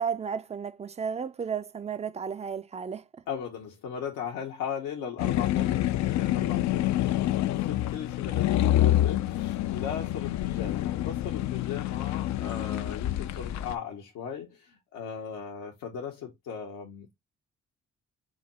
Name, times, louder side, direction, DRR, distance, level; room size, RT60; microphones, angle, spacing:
voice 1, 0.0-3.1, right 6 dB, 20° right, 0.4 m, -33 dB
voice 2, 3.3-17.1, left 7 dB, 80° left, 0.9 m, -38 dB
sound 1, 5.2-13.7, left 13 dB, 65° left, 0.4 m, -27 dB
4.9 x 2.1 x 4.0 m
supercardioid pair, 50°, 32 cm